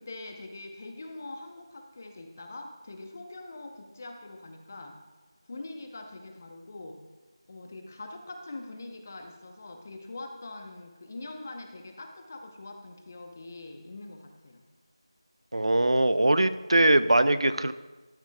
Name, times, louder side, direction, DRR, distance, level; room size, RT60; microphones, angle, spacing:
voice 1, 0.0-5.0 5.4-7.0 7.5-14.6, left 2 dB, 30° left, 4 dB, 0.7 m, -43 dB
voice 2, 15.5-17.7, right 1 dB, 75° right, 13 dB, 0.4 m, -22 dB
12.5 x 7.0 x 2.2 m, 1.2 s
figure-of-eight pair, 170°, 3 cm